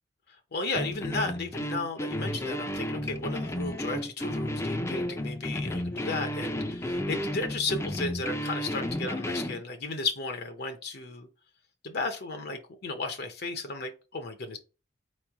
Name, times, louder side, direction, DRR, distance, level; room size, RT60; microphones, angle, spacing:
voice 1, 0.5-11.3 11.8-14.6, left 3 dB, 55° left, 7 dB, 0.7 m, -34 dB
sound 1, 0.7-9.6, left 1 dB, 15° left, 0.5 m, -32 dB
4.6 x 3.1 x 3.4 m, 0.33 s
head